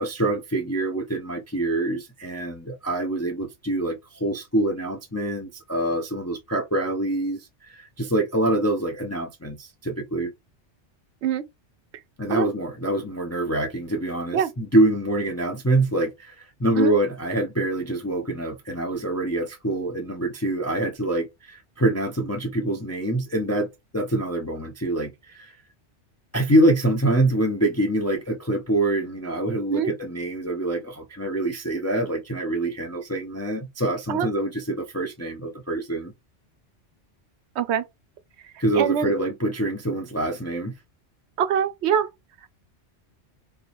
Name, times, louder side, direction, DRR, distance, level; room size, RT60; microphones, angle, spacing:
voice 1, 0.0-10.3 12.2-23.7 23.9-25.6 26.3-36.1 38.6-40.7, right 1 dB, 25° left, 0.3 m, -25 dB
voice 2, 38.8-39.1 41.4-42.1, right 8 dB, 70° right, 0.8 m, -23 dB
3.5 x 2.9 x 2.5 m
omnidirectional pair, 1.2 m